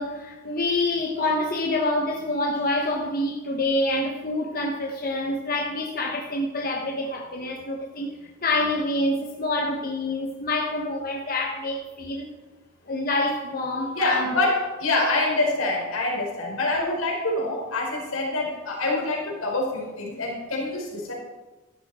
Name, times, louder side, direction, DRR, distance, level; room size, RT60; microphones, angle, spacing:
voice 1, 0.0-8.1 8.4-12.3 12.9-14.4, left 2 dB, 45° left, 0 dB, 1.3 m, -27 dB
voice 2, 13.9-21.1, left 2 dB, 80° left, -2 dB, 4.9 m, -26 dB
15.0 x 12.0 x 4.4 m, 1.2 s
head